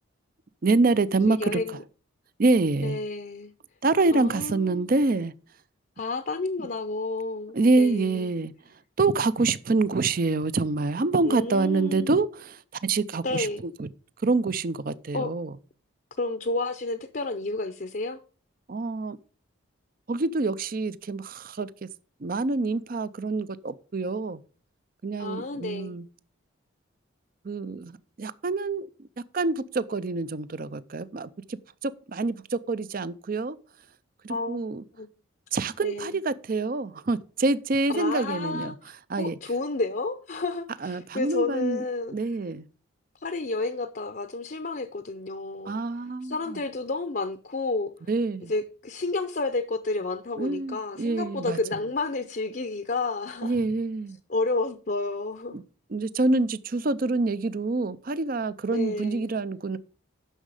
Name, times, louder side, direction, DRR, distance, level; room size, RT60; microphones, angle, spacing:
voice 1, 0.6-1.6 2.4-3.0 3.8-5.3 7.5-8.5 9.0-13.9 14.2-15.5 18.7-19.2 20.1-21.7 22.2-24.4 25.0-26.0 27.4-27.9 28.2-28.9 29.3-33.6 34.2-34.8 35.5-38.7 39.1-39.4 40.8-41.8 42.1-42.6 45.7-46.6 48.1-48.5 50.4-51.6 53.4-54.2 55.5-55.6 55.9-59.8, right 3 dB, 45° right, 0.5 m, -26 dB
voice 2, 1.3-1.8 2.8-3.5 4.1-4.9 6.0-8.3 11.3-12.1 13.2-13.6 15.1-15.3 16.2-18.2 25.2-26.0 34.3-34.6 34.9-35.1 35.8-36.2 37.9-38.8 39.2-42.1 43.1-47.9 48.4-53.6 54.3-55.6 58.7-59.3, left 3 dB, 45° left, 0.6 m, -31 dB
10.0 x 6.4 x 4.8 m
head